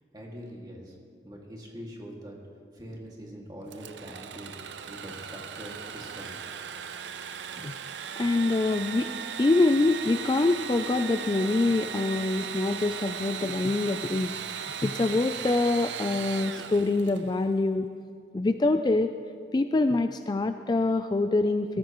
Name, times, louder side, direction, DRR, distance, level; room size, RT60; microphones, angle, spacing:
voice 1, 0.1-0.9 1.2-2.4 2.7-4.5 4.9-6.3, equal, 20° right, -2 dB, 2.1 m, -43 dB
Engine / Sawing, 3.7-17.4, right 7 dB, 80° right, 0.6 m, -37 dB
voice 2, 8.2-9.1 9.4-17.9 18.3-19.1 19.5-21.8, left 2 dB, 25° left, 9 dB, 0.3 m, -25 dB
21.0 x 14.0 x 3.0 m, 2.3 s
head